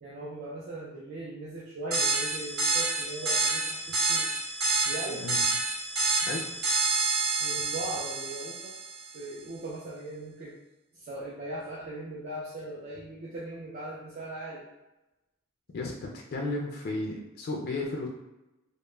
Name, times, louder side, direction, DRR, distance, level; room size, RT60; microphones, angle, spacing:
voice 1, 0.0-4.3 4.8-5.3 7.4-8.7 9.1-10.5 10.9-14.7, right 2 dB, 45° right, -6 dB, 0.4 m, -39 dB
sound 1, 1.9-9.1, right 3 dB, 70° right, 0.8 m, -28 dB
voice 2, 15.7-18.1, left 2 dB, 50° left, 0 dB, 0.3 m, -33 dB
2.2 x 2.0 x 3.0 m, 0.99 s
head